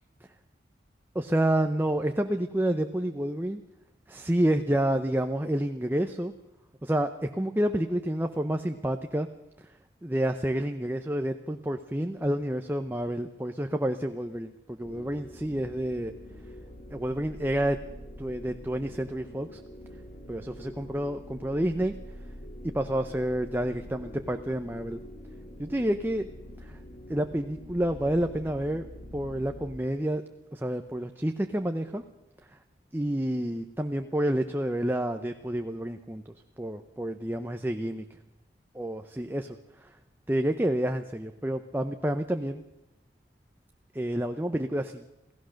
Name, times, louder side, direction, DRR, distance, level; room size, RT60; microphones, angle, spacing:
voice 1, 1.1-3.6 4.1-6.3 6.8-9.3 9.6-9.7 10.0-16.1 16.9-17.8 18.2-19.6 20.3-21.9 22.6-25.0 25.6-26.3 26.6-26.8 27.1-28.9 29.1-30.2 30.5-32.0 32.9-36.2 36.6-38.0 38.7-39.6 40.3-42.6 43.9-45.0, right 1 dB, 10° right, 6 dB, 0.7 m, -29 dB
sound 1, 14.8-29.8, equal, 45° left, 2.6 m, -45 dB
27.5 x 16.0 x 6.5 m, 0.97 s
head